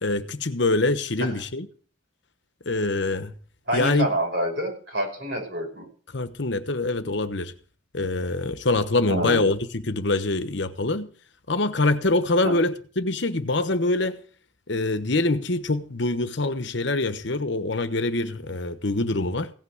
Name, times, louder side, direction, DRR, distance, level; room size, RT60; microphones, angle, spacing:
voice 1, 0.0-1.7 2.7-3.3 3.7-4.1 6.1-7.5 7.9-11.1 11.5-14.2 14.7-19.5, left 2 dB, 60° left, 1.1 m, -24 dB
voice 2, 3.7-5.9 9.1-9.5 12.4-12.6, right 1 dB, 60° right, 6.0 m, -27 dB
16.5 x 6.0 x 8.0 m
head